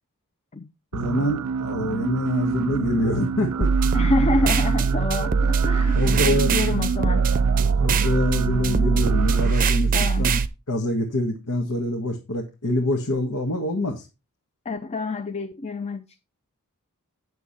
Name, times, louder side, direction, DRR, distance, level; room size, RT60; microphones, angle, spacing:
voice 1, 0.9-4.1 5.9-6.5 7.8-9.9 10.2-10.4 10.7-14.0, left 1 dB, 85° left, 1.6 m, -25 dB
sound 1, 0.9-9.5, right 6 dB, 85° right, 0.4 m, -29 dB
sound 2, 3.6-10.5, right 5 dB, 40° right, 0.6 m, -21 dB
voice 2, 3.9-7.3 9.9-10.3 14.6-16.2, left 3 dB, 30° left, 0.5 m, -27 dB
8.5 x 6.8 x 4.2 m
head